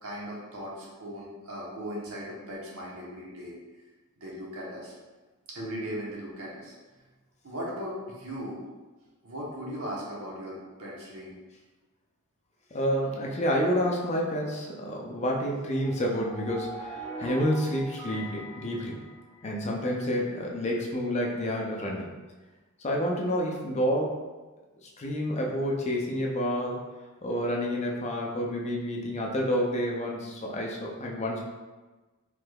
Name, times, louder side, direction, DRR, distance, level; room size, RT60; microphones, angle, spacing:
voice 1, 0.0-3.5 4.2-4.9 5.5-6.7 7.4-8.6 9.2-11.3, equal, 80° right, -4 dB, 0.9 m, -38 dB
voice 2, 12.7-19.0 19.4-22.1 22.8-24.2 24.8-26.9 27.2-31.4, equal, 30° left, -1 dB, 0.4 m, -29 dB
sound 1, 15.8-19.7, right 2 dB, 15° left, 0.8 m, -42 dB
3.3 x 3.1 x 2.3 m, 1.2 s
head